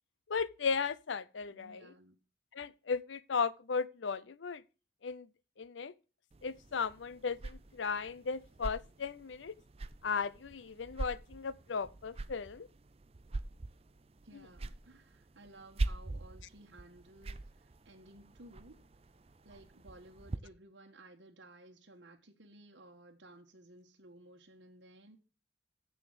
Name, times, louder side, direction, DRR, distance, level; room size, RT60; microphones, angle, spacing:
voice 1, 0.3-1.9 2.5-4.6 5.0-5.3 5.6-5.9 6.4-9.5 10.0-12.7, left 5 dB, 85° left, 0.6 m, -36 dB
voice 2, 1.5-2.2 14.2-18.8 19.4-25.2, right 1 dB, 75° right, 1.4 m, -57 dB
sound 1, 6.3-20.4, right 2 dB, 30° right, 0.5 m, -43 dB
7.1 x 6.9 x 7.8 m
head